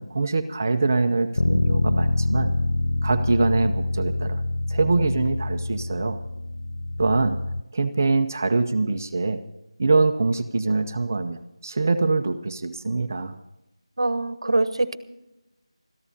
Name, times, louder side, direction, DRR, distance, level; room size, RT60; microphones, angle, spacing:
voice 1, 0.0-2.5 3.0-4.4 4.7-6.2 7.0-7.4 7.7-9.4 9.8-13.4, right 3 dB, 30° right, 7 dB, 0.6 m, -23 dB
Bass guitar, 1.4-7.6, left 2 dB, 55° left, 0.4 m, -25 dB
voice 2, 14.0-15.0, right 2 dB, 60° right, 13 dB, 1.0 m, -23 dB
26.5 x 14.0 x 2.7 m, 0.95 s
figure-of-eight pair, 175°, 3 cm